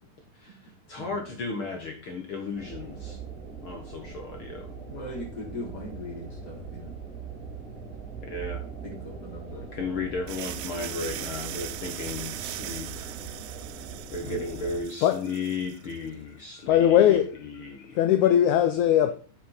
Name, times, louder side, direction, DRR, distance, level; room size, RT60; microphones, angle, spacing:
voice 1, 0.4-3.2 3.6-4.7 8.2-8.6 9.7-13.1 14.1-18.0, left 4 dB, 55° left, 1.6 m, -35 dB
sound 1, 2.6-14.8, right 5 dB, 25° right, 3.3 m, -41 dB
voice 2, 4.9-6.9 8.8-9.7 14.2-14.4, left 1 dB, 30° left, 4.0 m, -39 dB
sound 2, 10.3-16.0, right 16 dB, 85° right, 1.7 m, -39 dB
voice 3, 15.0-15.4 16.7-17.4 17.8-19.1, left 11 dB, 80° left, 1.8 m, -20 dB
8.4 x 7.5 x 4.3 m
omnidirectional pair, 4.0 m